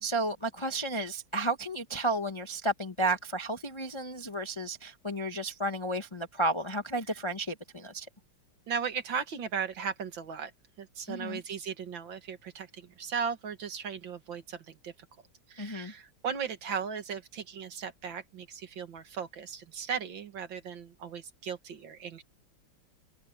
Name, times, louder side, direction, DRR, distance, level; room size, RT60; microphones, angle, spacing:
voice 1, 0.0-8.1 11.1-11.4 15.6-15.9, right 1 dB, 20° left, 0.8 m, -32 dB
voice 2, 8.7-10.5 10.8-14.9 15.5-22.2, right 7 dB, 65° right, 2.3 m, -37 dB
omnidirectional pair, 2.3 m